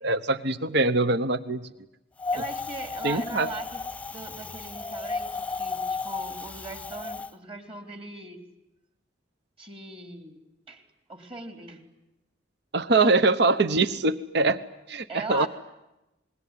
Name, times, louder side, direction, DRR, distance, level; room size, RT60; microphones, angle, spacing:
voice 1, 0.0-1.7 3.0-3.5 12.7-14.6 14.9-15.5, right 3 dB, 65° right, 13 dB, 1.0 m, -23 dB
Wind, 2.2-7.3, left 4 dB, 10° left, 0.9 m, -34 dB
voice 2, 2.3-3.8 4.1-8.4 9.6-10.4 10.7-10.8 11.1-11.8 15.1-15.5, right 2 dB, 30° right, 6 dB, 3.7 m, -39 dB
28.0 x 21.5 x 9.8 m, 0.94 s
head